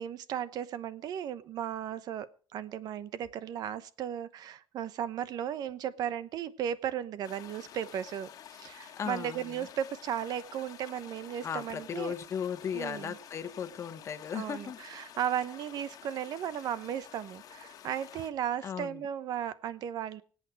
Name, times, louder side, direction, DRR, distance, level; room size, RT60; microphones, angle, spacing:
voice 1, 0.0-12.1 12.7-13.2 14.3-20.2, right 9 dB, 75° right, 15 dB, 1.0 m, -36 dB
sound 1, 7.2-18.3, left 10 dB, 60° left, 1.5 m, -50 dB
voice 2, 9.0-9.7 11.4-15.1 18.6-19.1, left 7 dB, 45° left, 11 dB, 1.2 m, -37 dB
25.0 x 8.6 x 4.7 m, 0.40 s
cardioid pair, 145°, 7 cm